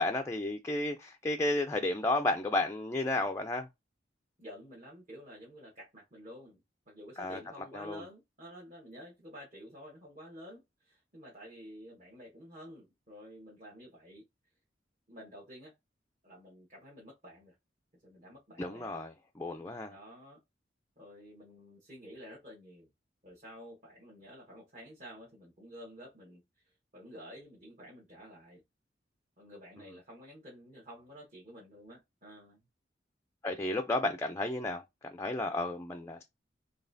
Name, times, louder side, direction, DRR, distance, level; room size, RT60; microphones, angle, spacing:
voice 1, 0.0-3.7 7.2-7.4 7.7-8.0 18.6-19.9 33.4-36.3, left 2 dB, 15° left, 0.3 m, -32 dB
voice 2, 4.4-14.2 15.1-15.7 16.2-17.5 18.0-19.0 19.9-20.4 21.0-22.9 23.2-28.6 29.4-32.6, equal, 45° right, 1.2 m, -51 dB
4.0 x 3.3 x 2.6 m
head